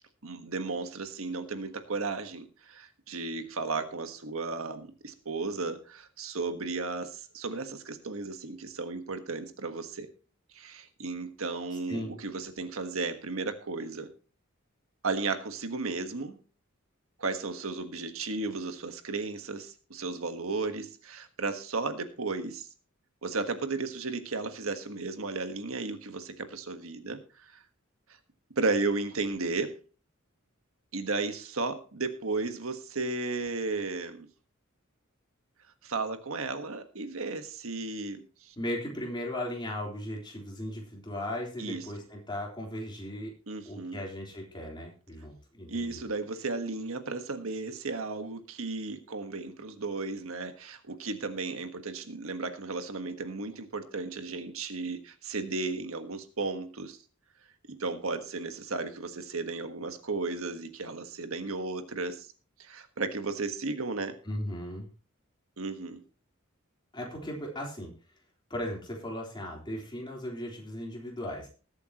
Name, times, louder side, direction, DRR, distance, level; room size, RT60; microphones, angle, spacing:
voice 1, 0.2-10.1 10.5-14.1 15.0-16.4 17.2-22.7 23.2-27.6 28.6-29.8 30.9-34.3 35.8-38.5 41.6-41.8 43.5-44.0 45.7-57.0 57.7-62.3 62.6-64.2 65.6-66.0, right 3 dB, 80° right, 8 dB, 1.4 m, -34 dB
voice 2, 38.6-43.3 43.7-46.0 64.2-64.9 66.9-67.9 68.5-71.5, left 1 dB, 20° left, -1 dB, 3.6 m, -37 dB
20.5 x 8.3 x 3.0 m, 0.37 s
head